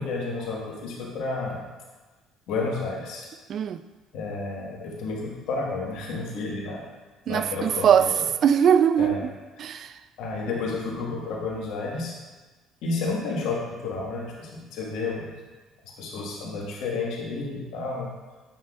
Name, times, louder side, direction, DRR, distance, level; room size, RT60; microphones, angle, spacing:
voice 1, 0.0-1.7 2.5-3.3 4.1-6.8 7.3-8.2 9.0-9.2 10.2-12.1 12.8-15.3 16.0-18.1, left 3 dB, 75° left, -2 dB, 1.5 m, -31 dB
voice 2, 3.5-3.8 7.3-8.1 8.4-9.3 9.6-9.9, right 8 dB, 55° right, 12 dB, 0.3 m, -21 dB
8.8 x 5.7 x 2.4 m, 1.3 s
supercardioid pair, 65°, 0 cm